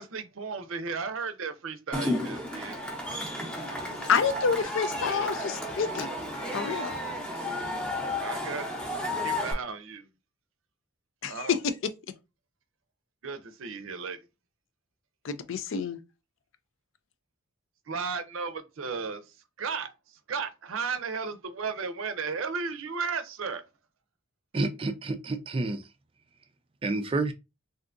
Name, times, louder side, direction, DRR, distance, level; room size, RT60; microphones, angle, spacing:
voice 1, 0.0-2.8 7.4-8.8 9.2-10.1 11.3-11.6 13.2-14.2 17.9-19.2 19.6-19.9 20.3-23.6, right 5 dB, 75° right, 0.5 m, -35 dB
Cheering / Crowd, 1.9-9.5, left 1 dB, 5° left, 0.7 m, -33 dB
voice 2, 4.1-6.1 6.5-7.0 11.2-11.7 15.2-16.0, left 6 dB, 65° left, 0.4 m, -28 dB
voice 3, 24.5-25.9 26.8-27.3, right 2 dB, 25° right, 0.3 m, -29 dB
3.5 x 2.6 x 2.5 m
head